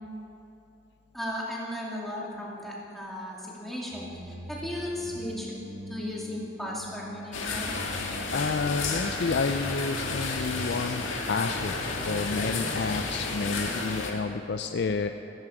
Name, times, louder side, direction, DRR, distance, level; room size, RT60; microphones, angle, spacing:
voice 1, 1.1-5.6 5.9-7.7 13.6-14.0, left 1 dB, ahead, -5 dB, 2.3 m, -36 dB
sound 1, 3.9-9.7, equal, 55° right, 1.5 m, -44 dB
sound 2, 7.3-14.1, left 3 dB, 80° left, 1.9 m, -32 dB
voice 2, 8.3-11.7 12.1-15.1, left 4 dB, 55° left, 7 dB, 0.4 m, -30 dB
15.5 x 14.5 x 4.9 m, 2.9 s
head